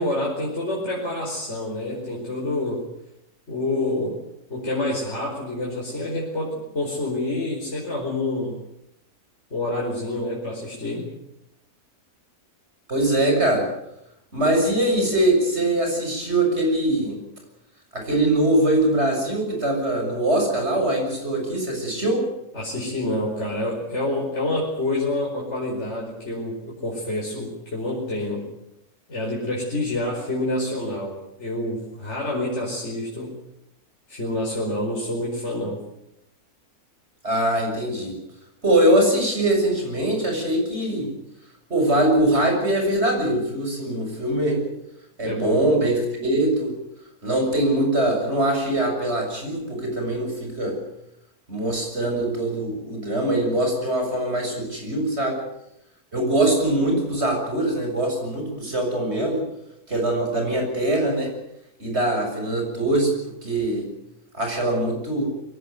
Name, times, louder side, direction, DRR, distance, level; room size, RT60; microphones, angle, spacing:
voice 1, 0.0-2.8 3.5-4.2 4.5-8.6 9.5-11.1 22.5-28.5 29.1-33.4 34.1-35.8 45.2-45.6, left 1 dB, 45° left, -3 dB, 5.4 m, -27 dB
voice 2, 12.9-13.7 14.3-17.2 17.9-22.2 37.2-38.2 38.6-41.1 41.7-44.6 45.2-46.7 47.2-50.7 51.5-55.4 56.1-59.4 59.9-61.3 61.8-63.9 64.3-65.2, right 1 dB, 45° right, 1 dB, 7.4 m, -22 dB
23.0 x 18.0 x 9.4 m, 0.83 s
omnidirectional pair, 1.6 m